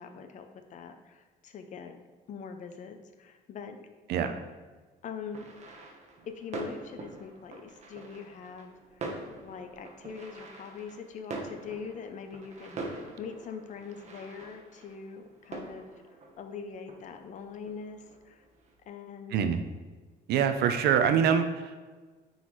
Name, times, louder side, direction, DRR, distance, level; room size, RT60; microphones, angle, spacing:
voice 1, 0.0-2.0 2.3-3.9 5.0-5.5 6.3-8.7 9.4-15.9 16.4-18.4 18.9-19.4, left 6 dB, 45° left, 7 dB, 0.6 m, -43 dB
sound 1, 5.3-18.7, right 3 dB, 40° right, 1.1 m, -44 dB
voice 2, 20.3-21.9, right 8 dB, 75° right, 8 dB, 0.6 m, -25 dB
9.3 x 4.0 x 3.1 m, 1.4 s
cardioid pair, 110°, 17 cm